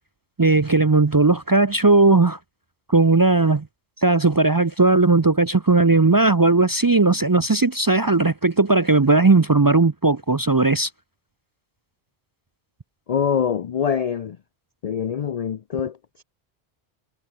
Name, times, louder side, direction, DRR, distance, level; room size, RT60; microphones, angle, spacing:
voice 1, 0.4-2.4 2.9-3.7 4.0-10.9, right 3 dB, 30° right, 0.4 m, -17 dB
voice 2, 13.1-14.4 14.8-16.2, left 8 dB, 50° left, 0.5 m, -24 dB
omnidirectional pair, 1.1 m